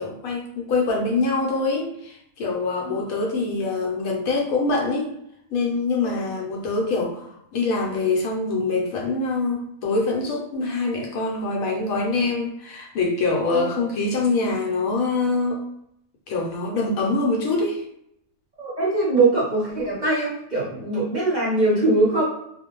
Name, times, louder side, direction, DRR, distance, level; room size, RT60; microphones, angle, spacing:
voice 1, 0.0-5.1 5.5-15.6 16.3-17.8, left 3 dB, 75° left, 0 dB, 1.0 m, -24 dB
voice 2, 18.6-22.2, right 2 dB, 40° right, -7 dB, 0.7 m, -22 dB
2.4 x 2.1 x 2.9 m, 0.75 s
omnidirectional pair, 1.6 m